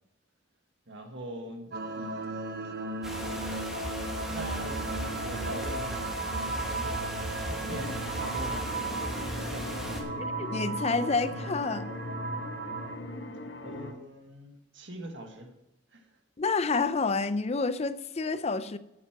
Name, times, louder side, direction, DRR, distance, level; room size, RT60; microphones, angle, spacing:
voice 1, 0.9-2.5 3.3-3.6 4.3-7.0 7.5-9.8 13.6-15.5 15.9-16.1, right 1 dB, 75° right, 1.7 m, -43 dB
sound 1, 1.7-13.0, right 3 dB, 55° right, 1.0 m, -36 dB
sound 2, 3.0-10.0, equal, 5° right, 2.0 m, -37 dB
sound 3, 7.7-13.9, left 2 dB, 70° left, 1.5 m, -39 dB
voice 2, 10.2-11.9 16.4-18.8, left 4 dB, 35° left, 0.5 m, -29 dB
9.2 x 8.5 x 6.0 m
head